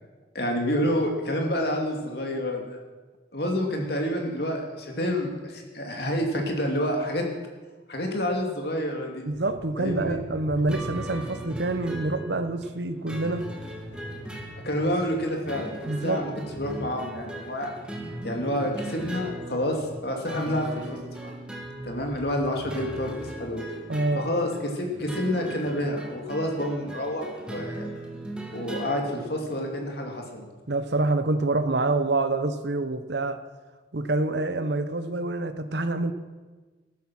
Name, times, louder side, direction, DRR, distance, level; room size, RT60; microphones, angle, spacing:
voice 1, 0.3-2.8 3.3-7.2 7.9-9.3 9.8-10.2 14.6-16.3 16.6-17.7 18.2-21.3 21.8-23.6 24.1-27.9 28.5-30.5, equal, 55° left, 1 dB, 2.7 m, -28 dB
voice 2, 9.2-13.5 15.9-16.2 23.9-24.2 30.7-33.4 33.9-36.1, right 2 dB, 65° right, 10 dB, 0.9 m, -26 dB
sound 1, 9.3-15.7 16.0-16.1 16.4-21.1 21.5-23.2, left 1 dB, 85° left, 3.6 m, -44 dB
sound 2, 10.7-29.9, right 1 dB, 5° right, 1.8 m, -39 dB
14.5 x 12.5 x 6.1 m, 1.3 s
head